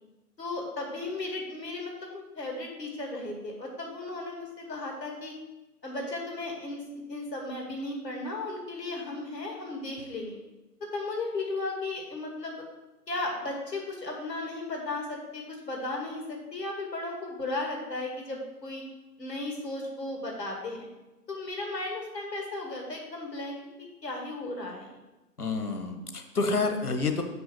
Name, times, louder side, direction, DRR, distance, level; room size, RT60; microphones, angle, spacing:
voice 1, 0.4-5.3 5.8-10.4 10.9-12.5 13.1-18.8 19.2-20.9 21.3-23.6 24.0-25.0, left 2 dB, 85° left, 0 dB, 2.4 m, -35 dB
voice 2, 25.4-27.2, left 3 dB, 65° left, 6 dB, 1.3 m, -28 dB
6.1 x 5.6 x 5.9 m, 1.0 s
hypercardioid pair, 180°, 48 cm